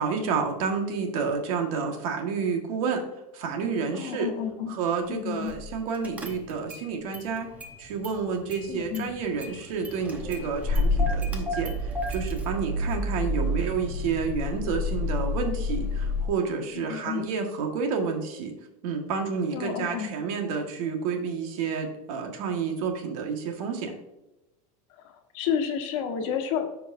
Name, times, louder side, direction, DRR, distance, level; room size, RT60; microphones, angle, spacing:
voice 1, 0.0-3.0 3.3-4.3 4.8-7.5 7.8-18.5 18.8-23.9, right 5 dB, 65° right, 3 dB, 1.6 m, -30 dB
voice 2, 3.9-4.8 5.1-5.5 8.7-9.1 16.7-17.3 19.5-20.1 25.0-26.7, left 8 dB, 55° left, 5 dB, 1.3 m, -31 dB
Car / Engine starting, 5.5-5.7 6.0-6.8 7.1-8.2 8.5-16.3, left 2 dB, 5° right, 0.8 m, -29 dB
13.0 x 4.9 x 2.6 m, 0.94 s
supercardioid pair, 170°, 20 cm